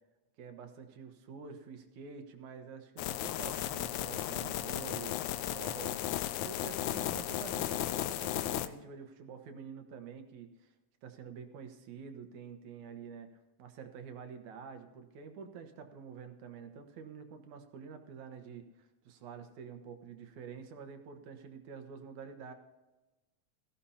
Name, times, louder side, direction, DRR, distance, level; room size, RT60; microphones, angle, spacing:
voice 1, 0.4-5.9 6.4-10.7 11.0-13.3 13.6-22.5, right 6 dB, 85° right, 6 dB, 2.7 m, -48 dB
sound 1, 3.0-8.7, left 13 dB, 85° left, 2.0 m, -35 dB
18.5 x 15.0 x 2.8 m, 1.1 s
omnidirectional pair, 3.3 m